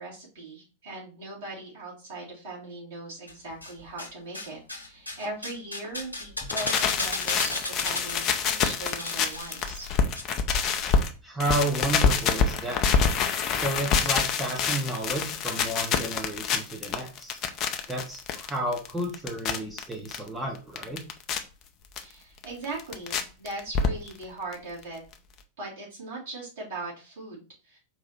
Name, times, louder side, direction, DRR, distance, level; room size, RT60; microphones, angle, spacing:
voice 1, 0.0-9.9 22.0-25.0 25.6-27.8, right 2 dB, 55° right, -5 dB, 2.8 m, -39 dB
sound 1, 3.3-4.1 4.3-10.2 10.5-10.6, left 2 dB, 85° left, 0.9 m, -35 dB
sound 2, 6.4-11.1 11.4-20.2 20.5-21.4 22.0-22.1 22.4-23.2 23.5-24.2 24.5-24.6 24.8-24.9 25.1-25.2, left 6 dB, 35° left, 0.6 m, -26 dB
voice 2, 11.2-12.8 13.5-17.4 17.9-21.0, right 1 dB, 10° right, -1 dB, 1.0 m, -32 dB
4.6 x 2.9 x 4.1 m, 0.35 s
figure-of-eight pair, 90°, 0 cm